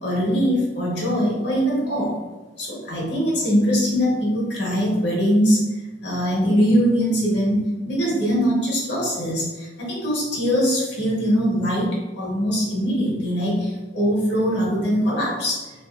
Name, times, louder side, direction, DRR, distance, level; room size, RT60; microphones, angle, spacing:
voice 1, 0.0-2.2 2.6-5.6 6.0-11.9 12.2-15.7, equal, 60° left, -4 dB, 1.1 m, -22 dB
3.6 x 2.8 x 2.4 m, 1.2 s
head